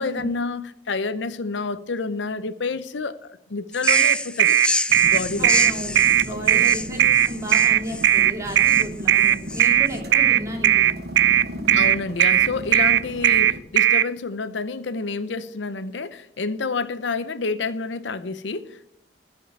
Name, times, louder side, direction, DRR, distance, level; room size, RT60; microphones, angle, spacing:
voice 1, 0.0-4.6 5.0-5.5 6.3-6.7 11.7-18.9, left 4 dB, 90° left, 0.7 m, -29 dB
sound 1, 3.7-10.0, left 2 dB, 5° left, 0.4 m, -29 dB
sound 2, 3.9-14.1, right 10 dB, 90° right, 0.4 m, -17 dB
sound 3, 4.9-13.6, equal, 60° right, 1.4 m, -36 dB
voice 2, 5.4-10.8, right 1 dB, 15° right, 2.9 m, -34 dB
14.0 x 5.4 x 8.1 m
head